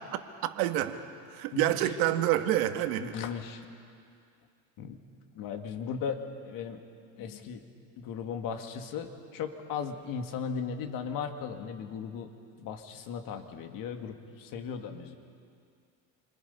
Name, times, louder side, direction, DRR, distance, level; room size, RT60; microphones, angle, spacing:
voice 1, 0.4-1.0 1.3-3.1, right 13 dB, 90° right, 8 dB, 1.5 m, -27 dB
voice 2, 1.5-1.9 3.0-3.6 4.8-5.0 5.4-6.8 7.2-7.6 8.0-12.3 12.6-15.2, left 6 dB, 55° left, 5 dB, 2.0 m, -37 dB
28.0 x 25.5 x 5.5 m, 2.3 s
cardioid pair, 140°, 40 cm